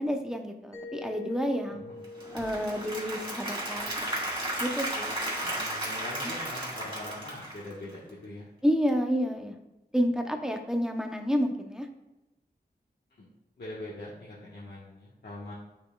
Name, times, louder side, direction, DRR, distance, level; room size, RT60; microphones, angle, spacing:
voice 1, 0.0-1.8 2.3-4.1 4.6-5.2 8.6-9.5 9.9-11.9, equal, 5° right, 3 dB, 0.8 m, -29 dB
Mallet percussion, 0.7-5.3, left 3 dB, 20° left, 1.8 m, -46 dB
Applause / Crowd, 2.0-8.1, right 1 dB, 30° right, 2.5 m, -34 dB
voice 2, 5.4-8.5 13.2-13.3 13.6-15.5, left 1 dB, 75° left, -7 dB, 1.3 m, -42 dB
8.4 x 6.4 x 2.3 m, 0.99 s
wide cardioid pair, 80°, 17 cm